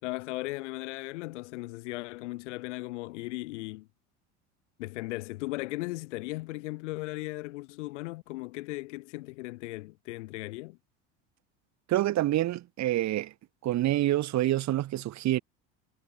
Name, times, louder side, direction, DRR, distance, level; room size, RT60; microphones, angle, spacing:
voice 1, 0.0-3.9 4.8-10.8, left 21 dB, 80° left, 4.2 m, -37 dB
voice 2, 11.9-13.3 13.6-15.4, right 14 dB, 50° right, 2.8 m, -27 dB
hypercardioid pair, 90°, 35 cm